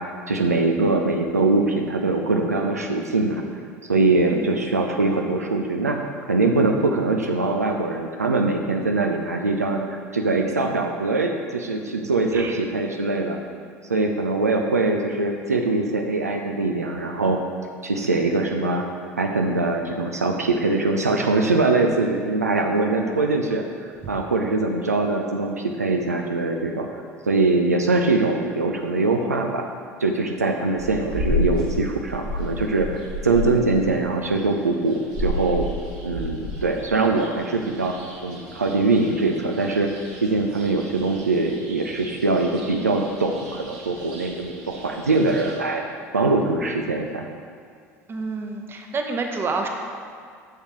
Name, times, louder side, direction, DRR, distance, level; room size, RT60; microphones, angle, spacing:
voice 1, 0.0-3.4 3.9-6.0 6.3-13.4 13.9-17.4 17.8-18.8 19.2-23.6 24.1-26.9 27.3-29.7 30.0-35.7 36.0-38.0 38.2-45.8 46.1-47.3, right 3 dB, 85° right, 3 dB, 0.5 m, -22 dB
sound 1, 30.8-45.6, left 1 dB, 60° right, 1.6 m, -33 dB
voice 2, 48.1-49.7, right 3 dB, 25° right, 3 dB, 0.9 m, -28 dB
9.8 x 6.6 x 3.1 m, 2.2 s
figure-of-eight pair, 70°, 8 cm